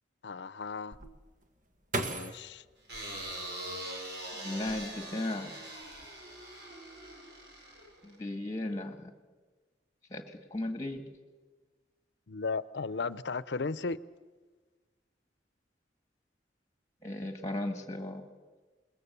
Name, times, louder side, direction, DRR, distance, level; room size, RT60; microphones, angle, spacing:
voice 1, 0.2-1.0 2.0-2.6 12.3-14.0, left 4 dB, 80° left, 0.6 m, -35 dB
sound 1, 0.9-4.0 4.5-5.3 5.6-6.1, right 2 dB, 50° right, 1.6 m, -39 dB
sound 2, 2.9-8.2, right 1 dB, 70° right, 6.5 m, -42 dB
voice 2, 4.3-5.6 8.0-9.1 10.1-11.0 17.0-18.3, left 1 dB, 20° left, 1.9 m, -36 dB
27.5 x 21.5 x 6.9 m
head